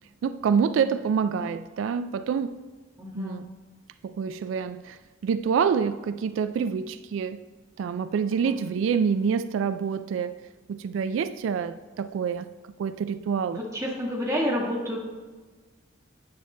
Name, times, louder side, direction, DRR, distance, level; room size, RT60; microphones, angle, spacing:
voice 1, 0.2-2.6 3.2-3.5 4.0-7.4 7.8-10.4 10.7-12.5 12.8-13.6, right 6 dB, 90° right, 0.3 m, -27 dB
voice 2, 3.0-3.4 8.4-8.5 13.5-15.0, equal, 15° right, 1.7 m, -29 dB
9.5 x 7.9 x 3.3 m
head